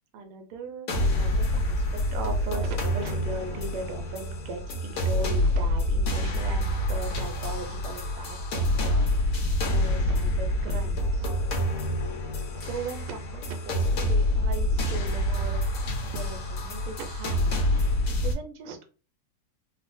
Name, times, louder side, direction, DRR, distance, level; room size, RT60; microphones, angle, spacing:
voice 1, 0.1-9.4 9.7-11.3 12.5-18.9, right 4 dB, 85° right, 5 dB, 1.6 m, -39 dB
sound 1, 0.9-18.3, left 1 dB, 90° left, 0.7 m, -27 dB
3.7 x 2.1 x 2.5 m, 0.37 s
omnidirectional pair, 2.4 m